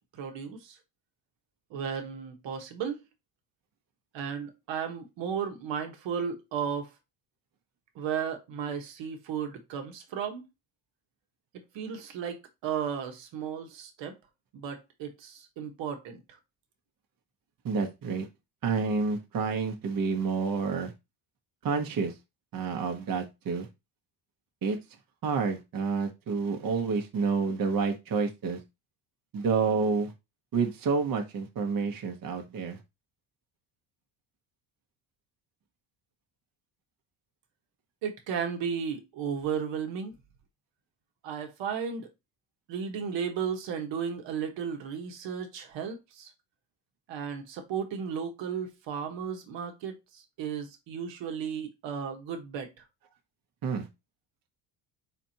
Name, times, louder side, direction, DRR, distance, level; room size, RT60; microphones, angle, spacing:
voice 1, 0.1-0.8 1.7-3.0 4.1-6.9 7.9-10.4 11.7-14.2 14.5-16.4 38.0-40.1 41.2-42.1 42.7-46.3 47.1-52.7, right 7 dB, 70° right, 1.4 m, -34 dB
voice 2, 17.6-18.3 18.6-20.9 21.6-22.1 22.5-23.7 24.6-24.8 25.2-28.6 29.3-30.1 30.5-32.8 53.6-53.9, right 5 dB, 45° right, 1.1 m, -29 dB
4.4 x 4.2 x 2.8 m
cardioid pair, 95°, 46 cm